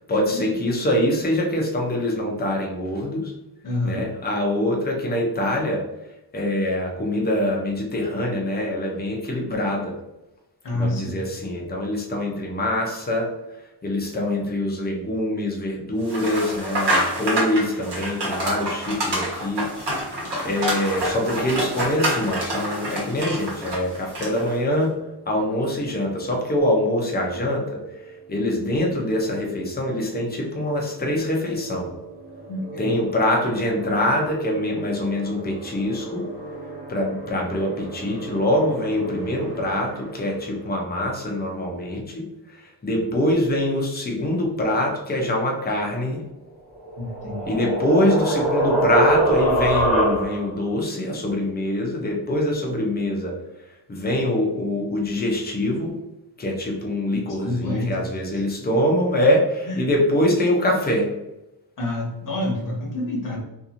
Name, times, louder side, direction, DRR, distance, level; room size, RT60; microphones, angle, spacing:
voice 1, 0.1-3.3 3.8-5.9 6.3-10.0 10.7-13.3 13.8-19.7 20.4-24.9 25.3-27.8 28.3-31.9 32.8-36.2 36.9-42.3 42.8-46.2 47.5-53.4 53.9-56.0 56.4-61.1, left 1 dB, 20° left, 0 dB, 0.6 m, -24 dB
voice 2, 3.6-4.1 10.6-11.2 32.5-33.0 47.0-47.5 57.1-58.1 59.7-59.8 61.8-63.4, left 1 dB, 45° left, -3 dB, 0.9 m, -28 dB
sound 1, 16.1-24.5, right 1 dB, 65° right, 1.2 m, -27 dB
sound 2, 24.4-40.9, right 3 dB, 25° right, 1.3 m, -39 dB
sound 3, 46.8-50.6, right 1 dB, ahead, 1.1 m, -22 dB
2.8 x 2.6 x 2.5 m, 0.94 s
wide cardioid pair, 145°, 44 cm